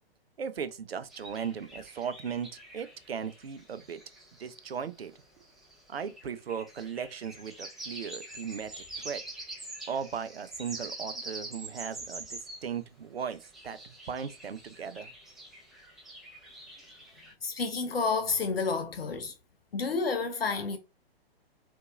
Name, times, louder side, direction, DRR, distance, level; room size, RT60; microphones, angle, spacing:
voice 1, 0.4-4.0 4.4-5.1 5.9-9.2 9.9-15.1, right 7 dB, 70° right, 0.6 m, -37 dB
sound 1, 1.1-12.7 13.2-17.3, right 2 dB, ahead, 0.6 m, -45 dB
voice 2, 17.4-19.3 19.7-20.8, left 4 dB, 65° left, 0.7 m, -30 dB
4.0 x 2.7 x 2.4 m
figure-of-eight pair, 120°, 31 cm